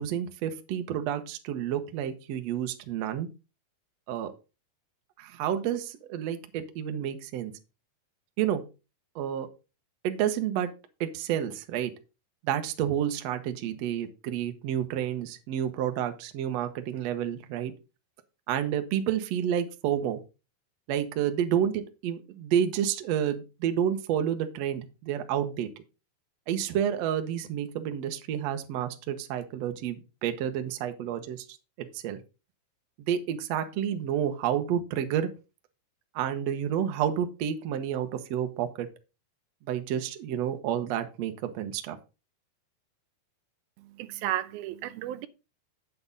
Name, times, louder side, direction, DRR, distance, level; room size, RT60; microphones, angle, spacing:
voice 1, 0.0-3.3 4.1-4.3 5.2-7.5 8.4-8.6 9.1-9.5 10.0-10.7 11.0-11.9 12.4-17.7 18.5-20.2 20.9-25.7 26.5-31.4 31.9-32.2 33.0-35.3 36.1-38.9 39.7-42.0, right 9 dB, 65° right, 1.7 m, -30 dB
voice 2, 44.0-45.3, right 14 dB, 90° right, 2.5 m, -33 dB
8.4 x 7.8 x 3.9 m
omnidirectional pair, 4.2 m